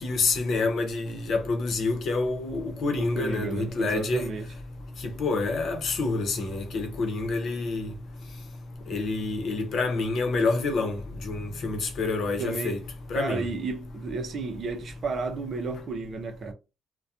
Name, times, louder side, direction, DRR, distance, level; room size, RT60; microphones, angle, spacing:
voice 1, 0.0-4.3 5.0-7.9 8.9-11.0 11.2-12.8 13.1-13.4, left 3 dB, 65° left, 0.8 m, -27 dB
voice 2, 3.0-4.5 12.4-12.8 13.1-16.5, right 4 dB, 55° right, 0.5 m, -32 dB
2.4 x 2.1 x 2.7 m
cardioid pair, 90°, 0 cm